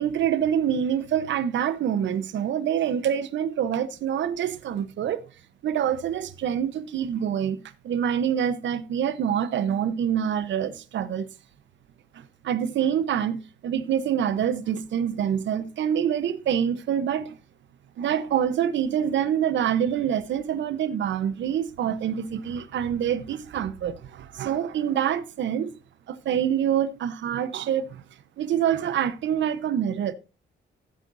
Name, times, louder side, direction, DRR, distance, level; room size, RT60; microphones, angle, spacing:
voice 1, 0.0-5.2 5.6-11.3 12.1-17.4 18.0-25.7 26.1-28.0 28.4-30.1, right 9 dB, 65° right, 1.0 m, -26 dB
15.0 x 8.5 x 2.7 m
cardioid pair, 90°, 20 cm